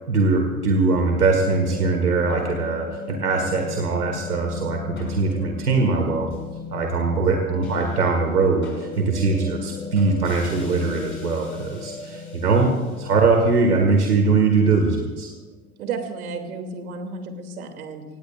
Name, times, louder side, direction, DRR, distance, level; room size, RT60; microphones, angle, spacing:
voice 1, 0.1-6.3 6.7-15.3, right 4 dB, 85° right, 3 dB, 2.0 m, -21 dB
sound 1, 1.0-15.4, left 5 dB, 25° left, 6.1 m, -36 dB
voice 2, 15.8-18.0, right 4 dB, 70° right, 5 dB, 2.8 m, -32 dB
26.0 x 18.5 x 2.5 m, 1.4 s
figure-of-eight pair, 90°, 45 cm